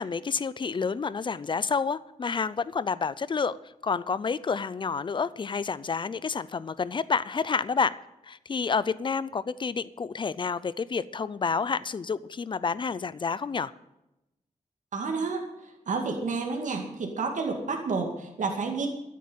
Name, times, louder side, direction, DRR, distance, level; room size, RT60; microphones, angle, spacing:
voice 1, 0.0-3.6 3.8-7.9 8.2-13.7, left 5 dB, 40° left, 17 dB, 0.5 m, -29 dB
voice 2, 14.9-18.9, right 4 dB, 70° right, 2 dB, 2.2 m, -30 dB
13.0 x 8.5 x 7.8 m, 0.90 s
wide cardioid pair, 175°, 13 cm